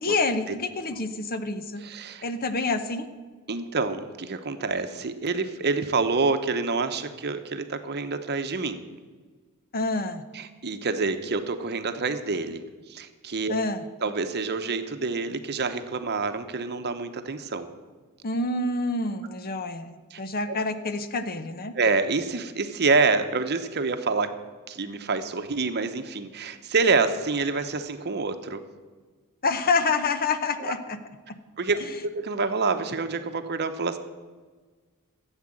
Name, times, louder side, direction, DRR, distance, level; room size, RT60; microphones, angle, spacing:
voice 1, 0.0-1.8 2.2-3.1 9.7-10.2 13.5-13.8 18.2-21.7 29.4-31.0, left 3 dB, 40° left, 10 dB, 0.8 m, -27 dB
voice 2, 1.8-2.2 3.5-8.8 10.3-12.6 12.9-13.5 14.0-17.7 20.1-20.2 20.5-20.6 21.8-24.3 24.7-28.6 30.6-30.7 31.6-34.0, right 4 dB, 50° right, 9 dB, 0.9 m, -27 dB
13.5 x 8.1 x 7.6 m, 1.4 s
head